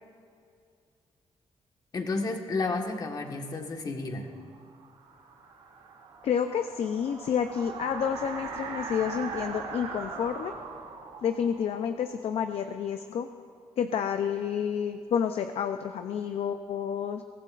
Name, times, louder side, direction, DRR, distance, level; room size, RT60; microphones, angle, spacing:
voice 1, 1.9-4.3, left 3 dB, 35° left, 3 dB, 1.5 m, -31 dB
sound 1, 4.5-13.2, right 5 dB, 85° right, 2.6 m, -41 dB
voice 2, 6.2-10.5 11.2-13.3 13.8-17.2, left 8 dB, 65° left, 7 dB, 0.6 m, -29 dB
23.0 x 18.0 x 2.5 m, 2.3 s
cardioid pair, 150°, 11 cm